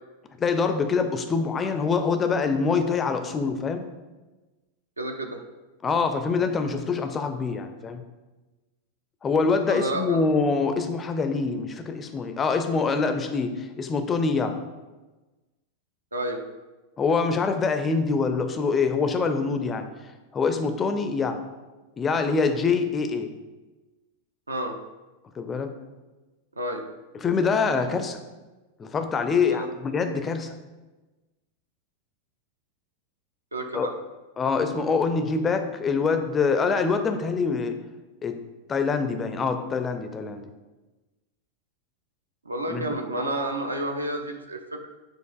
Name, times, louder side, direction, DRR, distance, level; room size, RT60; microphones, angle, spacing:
voice 1, 0.4-3.9 5.8-8.0 9.2-14.5 17.0-19.9 20.3-21.4 22.0-23.3 25.4-25.7 27.1-28.2 28.8-30.5 33.7-33.9 34.4-37.8 38.2-38.4 38.7-40.5 42.7-42.9, left 4 dB, 20° left, 7 dB, 0.4 m, -25 dB
voice 2, 5.0-5.4 9.7-10.2 16.1-16.4 24.5-24.8 26.6-26.8 29.5-29.7 33.5-33.9 42.5-44.6, right 1 dB, 80° right, 4 dB, 0.5 m, -30 dB
6.4 x 2.4 x 2.3 m, 1.2 s
figure-of-eight pair, 90°, 0 cm